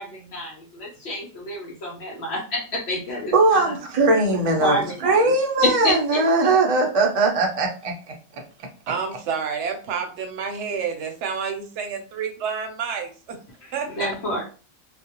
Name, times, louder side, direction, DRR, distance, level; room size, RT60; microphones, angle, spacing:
voice 1, 0.0-3.7 4.6-5.3 5.6-6.2 13.9-14.4, left 1 dB, 65° left, -1 dB, 0.9 m, -28 dB
voice 2, 3.3-7.9, right 3 dB, 50° right, 1 dB, 0.4 m, -20 dB
voice 3, 8.9-13.4 13.7-14.4, right 6 dB, 70° right, 4 dB, 0.9 m, -29 dB
2.4 x 2.0 x 2.8 m, 0.38 s
omnidirectional pair, 1.3 m